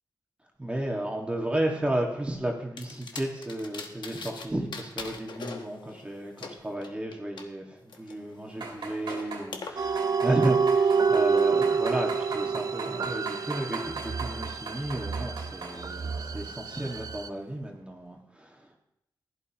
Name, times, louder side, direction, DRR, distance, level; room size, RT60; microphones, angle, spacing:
voice 1, 0.6-18.8, right 1 dB, 15° right, 0 dB, 1.6 m, -33 dB
sound 1, 2.8-4.5 4.7-7.4 7.9-9.7, left 4 dB, 75° left, 1.2 m, -42 dB
sound 2, 8.5-9.5 10.0-15.8 16.2-16.5 16.9-17.0, right 4 dB, 80° right, 2.7 m, -39 dB
sound 3, 9.8-17.3, right 5 dB, 50° right, 0.6 m, -27 dB
15.5 x 11.0 x 2.9 m, 0.80 s
wide cardioid pair, 110°, 8 cm